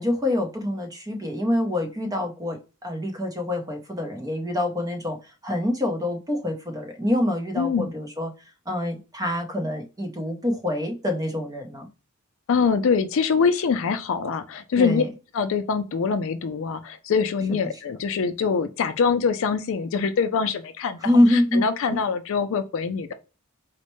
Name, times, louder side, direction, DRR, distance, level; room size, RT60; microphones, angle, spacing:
voice 1, 0.0-5.2 5.4-8.3 8.7-11.9 14.8-15.1 21.0-21.6 21.9-22.0, left 1 dB, 15° right, 0.6 m, -25 dB
voice 2, 7.6-7.9 12.5-15.0 15.3-23.1, left 5 dB, 65° left, 0.4 m, -24 dB
4.2 x 2.1 x 3.0 m
head